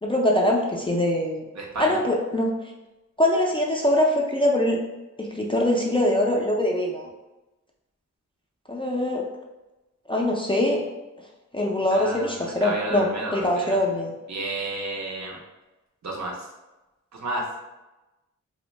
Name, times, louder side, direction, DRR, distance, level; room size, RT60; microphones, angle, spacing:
voice 1, 0.0-1.4 1.8-2.6 3.2-4.8 5.2-7.1 8.7-9.2 10.1-10.8 11.5-14.1, left 1 dB, 15° left, -2 dB, 0.3 m, -23 dB
voice 2, 1.5-2.0 11.9-13.8 14.3-15.4 16.0-16.5 17.1-17.4, right 2 dB, 60° right, -1 dB, 0.7 m, -32 dB
2.5 x 2.1 x 3.1 m, 1.0 s
wide cardioid pair, 75°, 32 cm